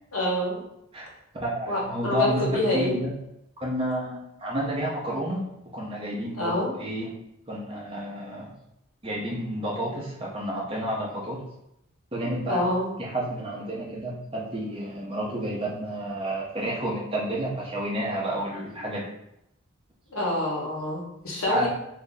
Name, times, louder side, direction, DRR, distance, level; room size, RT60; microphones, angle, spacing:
voice 1, 0.1-0.6 1.7-3.0 6.3-6.7 12.5-12.9 20.1-21.7, left 1 dB, 80° left, -5 dB, 1.2 m, -27 dB
voice 2, 1.3-2.4 2.7-3.1 3.6-5.5 5.7-7.1 7.5-8.5 9.0-11.4 12.1-12.7 13.0-19.1 21.4-21.7, equal, 25° right, -4 dB, 0.7 m, -30 dB
2.7 x 2.5 x 3.8 m, 0.82 s
head